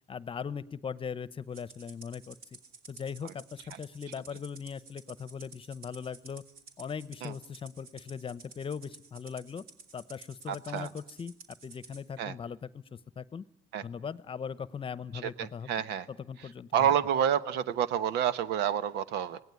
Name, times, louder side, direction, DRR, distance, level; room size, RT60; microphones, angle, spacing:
voice 1, 0.1-2.4 2.9-6.4 6.8-9.6 9.9-11.3 11.6-13.4 13.8-15.7 16.1-16.9, left 6 dB, 30° left, 17 dB, 1.0 m, -39 dB
Rattle (instrument), 1.5-12.0, right 4 dB, 65° right, 3.5 m, -52 dB
voice 2, 10.5-10.9 12.2-12.3 13.7-13.8 15.2-16.1 16.7-19.4, right 9 dB, 85° right, 14 dB, 1.2 m, -29 dB
27.0 x 18.5 x 9.7 m, 0.70 s
cardioid pair, 110°, 17 cm